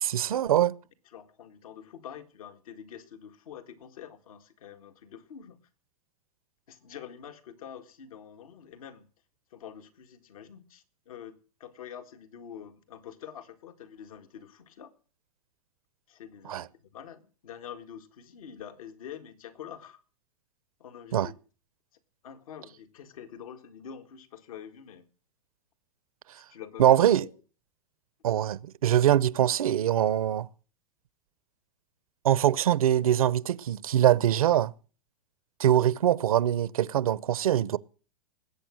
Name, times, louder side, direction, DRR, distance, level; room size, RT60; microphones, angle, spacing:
voice 1, 0.0-0.7 16.5-16.6 21.1-21.3 26.8-27.3 28.2-30.5 32.2-34.7 35.6-37.8, right 11 dB, 85° right, 0.8 m, -23 dB
voice 2, 1.1-5.6 6.7-9.1 9.5-14.9 16.1-20.0 20.8-21.4 22.2-25.1 26.4-27.4, left 9 dB, 80° left, 1.8 m, -46 dB
20.0 x 8.7 x 6.3 m
hypercardioid pair, 130°, 18 cm